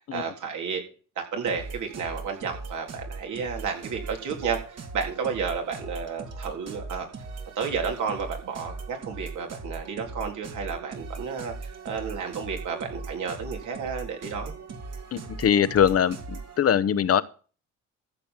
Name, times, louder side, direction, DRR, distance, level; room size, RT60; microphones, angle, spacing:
voice 1, 0.1-0.8 1.2-7.1 7.6-14.5, right 6 dB, 75° right, 2 dB, 3.8 m, -32 dB
sound 1, 1.4-16.6, right 3 dB, 55° right, 2.8 m, -39 dB
voice 2, 15.1-17.2, left 8 dB, 50° left, 16 dB, 0.9 m, -22 dB
14.0 x 5.9 x 7.4 m, 0.38 s
cardioid pair, 90°, 30 cm